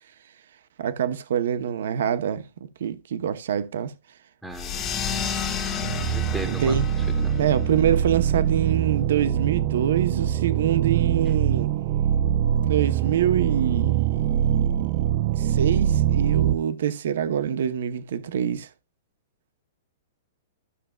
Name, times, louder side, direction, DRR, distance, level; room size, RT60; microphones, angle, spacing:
voice 1, 0.8-3.9 6.5-6.9 7.4-11.7 12.6-14.6 15.3-18.7, right 9 dB, 70° right, 0.8 m, -25 dB
voice 2, 4.4-4.9 6.1-7.5 11.2-11.3, right 1 dB, ahead, 1.0 m, -37 dB
sound 1, 4.5-9.6, left 6 dB, 20° left, 1.5 m, -32 dB
sound 2, 5.8-16.6, right 10 dB, 45° right, 0.3 m, -23 dB
12.5 x 6.0 x 2.2 m
hypercardioid pair, 145°, 0 cm